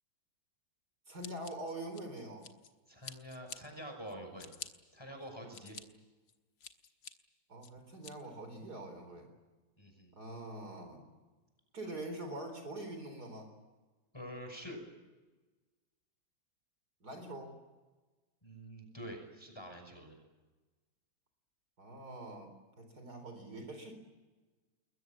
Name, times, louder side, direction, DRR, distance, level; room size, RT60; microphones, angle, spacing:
voice 1, 1.1-2.5 7.5-9.3 10.1-11.0 11.7-13.5 17.0-17.6 21.8-22.5 22.8-24.0, right 1 dB, 55° right, 5 dB, 4.6 m, -44 dB
Scissors, 1.2-2.7 3.0-3.6 4.1-4.7 5.2-5.8 6.3-7.1 7.6-8.1, left 7 dB, 75° left, 2.1 m, -48 dB
voice 2, 2.9-4.5 4.9-5.8 9.8-10.1 14.1-14.8 18.4-20.2, equal, 15° left, 3 dB, 5.9 m, -47 dB
29.0 x 21.5 x 7.4 m, 1.2 s
omnidirectional pair, 2.0 m